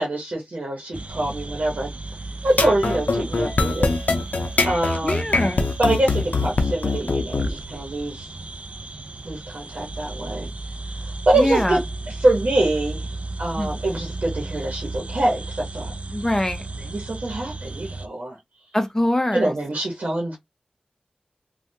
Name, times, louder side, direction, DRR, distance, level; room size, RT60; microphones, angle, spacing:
voice 1, 0.0-1.9 2.4-3.9 4.6-5.3 5.8-8.3 9.2-11.8 12.1-13.1 13.4-15.9 16.8-18.4 19.3-20.4, right 1 dB, 70° right, 1.0 m, -24 dB
sound 1, 0.9-18.1, right 2 dB, 50° right, 0.4 m, -34 dB
sound 2, 2.5-7.5, left 3 dB, 90° left, 0.5 m, -22 dB
voice 2, 5.0-5.7 11.4-11.8 13.6-13.7 16.1-16.6 18.7-19.5, left 1 dB, 15° left, 0.7 m, -24 dB
3.2 x 2.3 x 2.8 m
wide cardioid pair, 60°, 3 cm